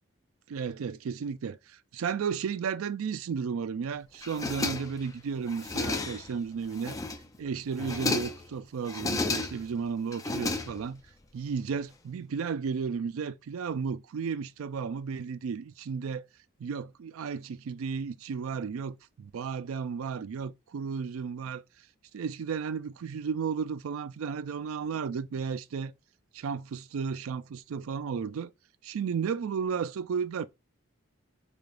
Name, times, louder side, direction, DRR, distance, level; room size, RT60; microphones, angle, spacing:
voice 1, 0.5-7.0 7.4-11.0 11.3-16.3 16.6-21.6 22.1-25.9 26.3-28.5 28.8-30.5, right 6 dB, 80° right, 0.4 m, -33 dB
sound 1, 4.2-5.1 5.5-6.3 6.7-7.4 7.7-8.5 8.8-9.7 10.1-11.1, left 3 dB, 15° left, 0.3 m, -32 dB
4.6 x 3.4 x 2.5 m
head